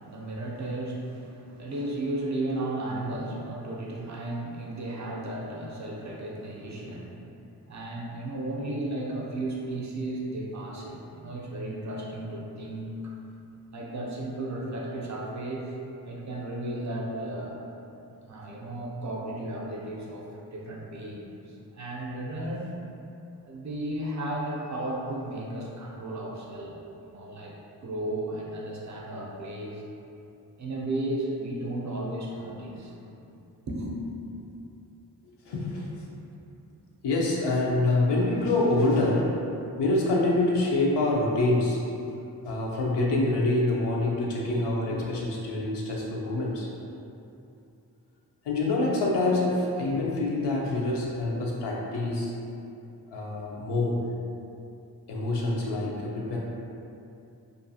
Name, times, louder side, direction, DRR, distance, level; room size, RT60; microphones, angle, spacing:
voice 1, 0.0-7.2 7.7-13.2 13.7-15.7 16.0-17.6 18.3-22.7 23.4-26.8 27.1-27.6 27.8-29.9 30.6-33.1 33.7-34.0, right 1 dB, 45° right, -3 dB, 0.5 m, -34 dB
voice 2, 35.4-36.1 37.0-39.3 39.8-41.8 42.4-46.7 48.4-52.3 53.1-54.0 55.1-56.4, left 2 dB, 90° left, -3 dB, 0.6 m, -26 dB
2.5 x 2.3 x 2.6 m, 2.7 s
cardioid pair, 80°, 41 cm